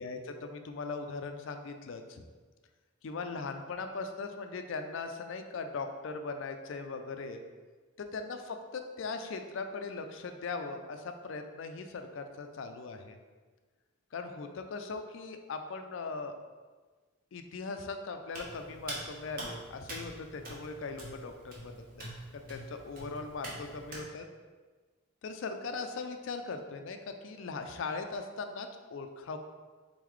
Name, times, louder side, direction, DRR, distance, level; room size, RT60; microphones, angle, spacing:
voice 1, 0.0-2.2 3.0-7.4 8.0-13.2 14.1-16.3 17.3-24.3 25.2-27.0 27.2-29.4, left 4 dB, 65° left, 6 dB, 0.4 m, -39 dB
Hands, 18.3-24.0, right 1 dB, 45° right, 0.8 m, -45 dB
3.8 x 3.8 x 3.1 m, 1.4 s
head